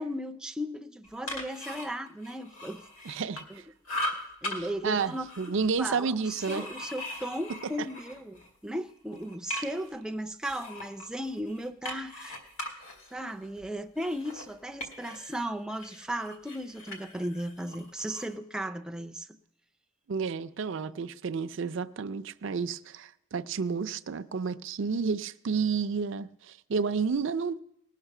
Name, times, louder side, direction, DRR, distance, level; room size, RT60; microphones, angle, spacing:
voice 1, 0.0-3.2 3.5-3.6 4.4-5.3 5.8-12.4 13.1-19.3 20.9-21.0, equal, 5° right, 0.4 m, -36 dB
sound 1, 1.0-3.6 3.9-4.6 5.0-8.5 8.9-9.9 10.4-15.4 15.7-18.3, left 1 dB, 75° left, 2.3 m, -40 dB
voice 2, 3.1-3.6 4.6-6.6 20.1-27.6, right 5 dB, 60° right, 0.5 m, -31 dB
19.5 x 6.6 x 5.9 m
head